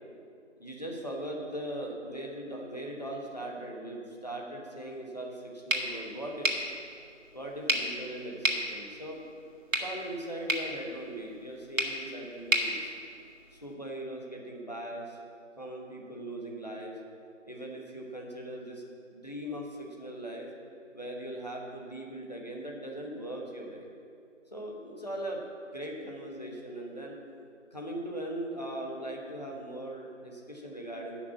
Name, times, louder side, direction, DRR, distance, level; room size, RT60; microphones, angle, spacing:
voice 1, 0.6-6.5 7.3-9.2 9.7-12.9 13.5-15.2 15.6-17.0 17.5-18.8 19.1-20.5 20.9-23.9 24.5-25.4 25.7-27.2 27.7-31.2, right 1 dB, 30° left, -1 dB, 1.3 m, -39 dB
sound 1, 5.7-13.7, right 1 dB, 90° right, 1.9 m, -34 dB
10.0 x 6.0 x 8.3 m, 2.4 s
figure-of-eight pair, 175°, 38 cm